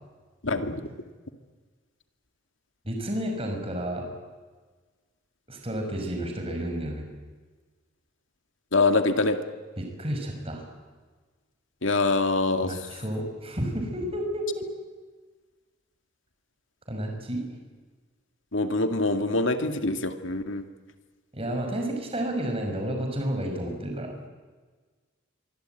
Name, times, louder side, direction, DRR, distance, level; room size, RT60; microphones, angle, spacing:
voice 1, 0.4-0.9 8.7-9.4 11.8-12.8 18.5-20.6, left 3 dB, 65° left, 7 dB, 2.1 m, -24 dB
voice 2, 2.8-4.1 5.5-7.1 9.8-10.7 12.6-14.7 16.9-17.4 21.3-24.1, right 1 dB, 30° right, 3 dB, 5.4 m, -31 dB
25.0 x 24.0 x 9.1 m, 1.4 s
head